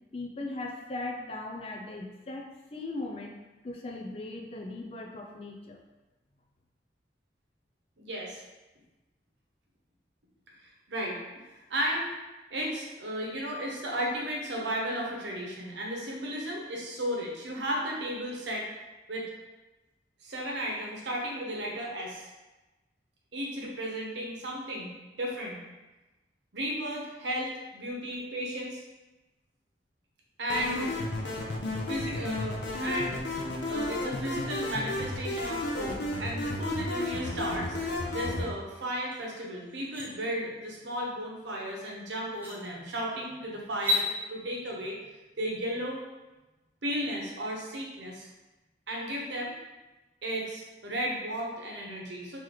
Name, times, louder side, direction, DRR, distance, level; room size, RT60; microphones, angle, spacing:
voice 1, 0.1-3.3 3.6-5.8, left 2 dB, 30° left, 1 dB, 0.4 m, -38 dB
voice 2, 8.0-8.4 10.6-11.4 11.7-12.1 12.5-18.7 19.1-19.3 20.2-22.3 23.3-24.9 25.2-25.6 26.5-28.8 30.4-31.0 31.9-33.2 33.6-37.8 38.1-45.0 45.4-46.0 46.8-48.3 48.9-49.6 50.2-52.4, equal, 85° right, -2 dB, 0.9 m, -34 dB
sound 1, 30.5-38.5, left 2 dB, 85° left, 0.7 m, -33 dB
sound 2, 39.1-39.2 39.6-40.1 41.7-41.8 42.3-42.6 43.7-44.1, left 2 dB, 10° right, 0.8 m, -30 dB
3.1 x 2.9 x 3.8 m, 1.1 s
head